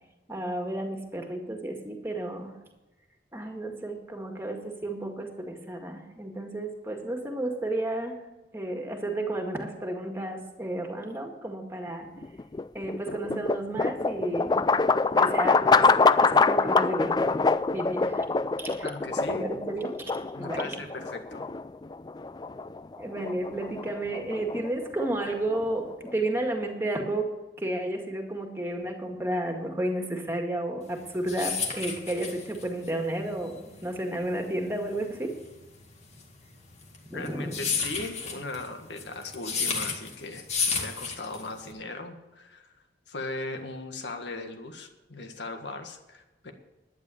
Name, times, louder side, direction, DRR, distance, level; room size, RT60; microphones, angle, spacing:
voice 1, 0.3-2.5 3.3-8.2 8.5-12.1 12.7-14.7 15.2-15.9 16.2-17.4 17.7-18.3 18.6-18.9 19.3-20.7 23.0-27.3 27.6-35.3 37.1-37.6, right 1 dB, 15° right, 2 dB, 1.9 m, -32 dB
sound 1, 12.2-26.3, left 4 dB, 25° left, 0.3 m, -25 dB
voice 2, 18.8-19.5 20.3-21.4 37.1-42.7 43.1-46.5, left 2 dB, 80° left, 5 dB, 1.8 m, -38 dB
sound 2, 30.9-41.7, left 5 dB, 40° left, 2.1 m, -32 dB
12.0 x 9.6 x 7.0 m, 1.1 s
head